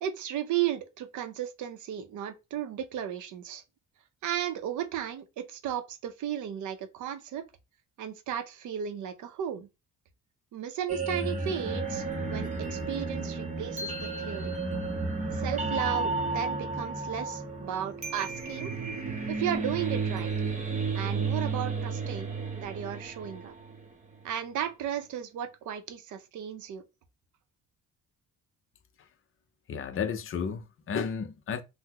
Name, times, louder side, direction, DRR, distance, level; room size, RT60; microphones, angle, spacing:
voice 1, 0.0-3.6 4.2-7.4 8.0-9.7 10.5-14.5 15.3-18.7 19.3-20.3 20.9-23.5 24.2-26.8, right 10 dB, 65° right, 0.7 m, -34 dB
sound 1, 10.9-23.9, right 3 dB, 25° right, 0.7 m, -32 dB
voice 2, 29.7-31.6, left 6 dB, 40° left, 0.6 m, -32 dB
3.8 x 2.1 x 2.8 m
cardioid pair, 125°, 33 cm